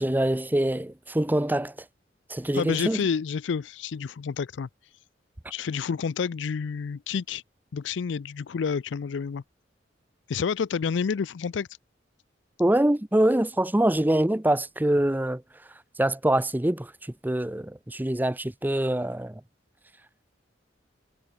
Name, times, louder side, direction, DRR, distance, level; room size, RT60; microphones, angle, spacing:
voice 1, 0.0-1.7 2.3-3.0 12.6-15.4 16.0-16.9 17.2-19.4, right 1 dB, 10° right, 0.7 m, -24 dB
voice 2, 2.5-4.7 5.5-7.4 7.7-9.4 10.3-11.7, left 6 dB, 75° left, 0.4 m, -29 dB
head